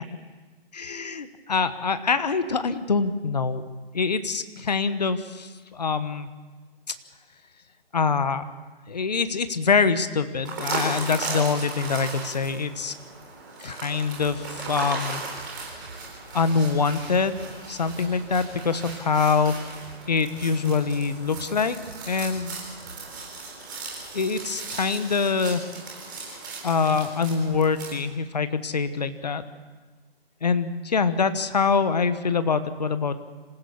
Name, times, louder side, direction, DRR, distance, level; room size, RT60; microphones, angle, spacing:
voice 1, 0.7-3.6 3.9-6.3 7.9-8.4 8.9-12.9 13.6-15.2 16.3-19.6 20.1-21.8 22.1-22.6 24.1-25.6 26.6-29.4 30.4-33.2, left 5 dB, 40° left, 11 dB, 1.1 m, -24 dB
sound 1, 10.4-27.9, right 3 dB, 20° right, 4.1 m, -37 dB
sound 2, 15.3-15.5 15.8-19.5 19.8-23.2, right 3 dB, 85° right, 4.5 m, -46 dB
26.5 x 15.5 x 7.0 m, 1.3 s
hypercardioid pair, 180°, 31 cm